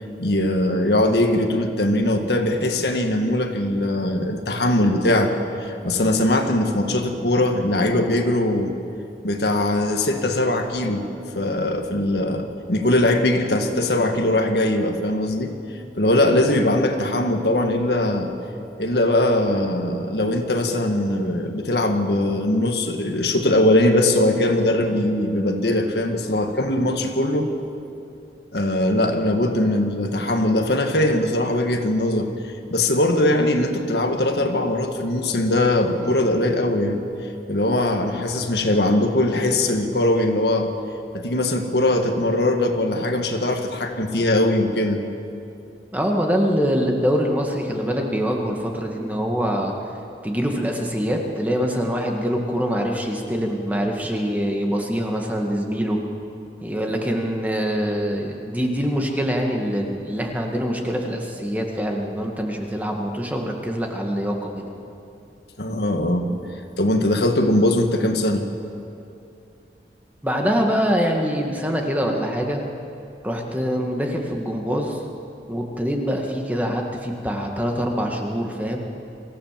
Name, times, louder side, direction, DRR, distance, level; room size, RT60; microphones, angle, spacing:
voice 1, 0.2-5.3 5.6-8.8 9.2-11.1 11.3-15.5 16.0-18.3 18.8-27.5 28.5-32.3 32.7-37.0 37.5-40.7 41.1-45.0 65.6-66.3 66.8-68.5, left 1 dB, 75° left, 4 dB, 1.8 m, -21 dB
voice 2, 45.9-49.7 50.2-56.0 56.6-64.7 70.2-72.6 73.2-75.0 75.5-78.8, equal, 10° right, 1 dB, 1.8 m, -24 dB
24.5 x 15.5 x 7.6 m, 2.6 s
head